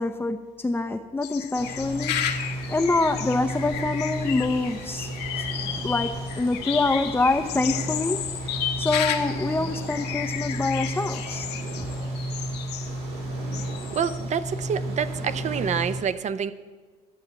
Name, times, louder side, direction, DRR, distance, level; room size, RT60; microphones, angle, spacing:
voice 1, 0.0-2.4 2.7-5.1 5.4-5.5 5.8-11.5, left 3 dB, 15° left, 4 dB, 0.6 m, -26 dB
sound 1, 1.2-12.9 13.5-14.2, left 10 dB, 75° left, 1.3 m, -33 dB
sound 2, 1.5-16.0, right 1 dB, 75° right, 4.2 m, -33 dB
voice 2, 13.9-16.5, right 7 dB, 45° right, 13 dB, 0.7 m, -27 dB
12.0 x 7.2 x 8.7 m, 1.4 s
cardioid pair, 110°, 17 cm